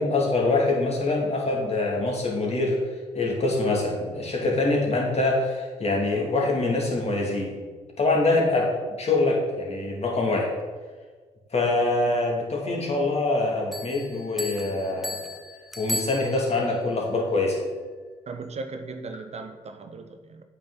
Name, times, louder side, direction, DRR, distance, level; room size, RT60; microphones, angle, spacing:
voice 1, 0.0-2.8 3.1-7.6 8.0-8.7 9.0-10.5 11.5-15.2 15.8-17.6, left 2 dB, 40° left, -1 dB, 2.4 m, -24 dB
Bell, 13.7-16.8, equal, ahead, 1.0 m, -35 dB
voice 2, 18.3-20.4, right 3 dB, 40° right, 7 dB, 0.7 m, -37 dB
8.5 x 5.9 x 3.9 m, 1.5 s
hypercardioid pair, 50°, 16 cm